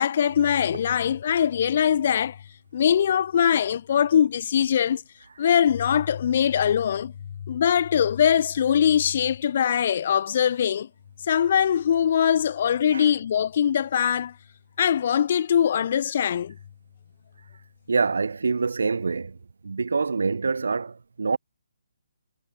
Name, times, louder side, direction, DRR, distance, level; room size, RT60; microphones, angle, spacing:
voice 1, 0.0-2.4 2.7-5.0 5.4-7.1 7.5-10.9 11.3-14.3 14.8-16.5, left 9 dB, 45° left, 0.4 m, -22 dB
voice 2, 17.9-19.4 19.6-21.4, right 4 dB, 70° right, 1.3 m, -25 dB
figure-of-eight pair, 140°, 0 cm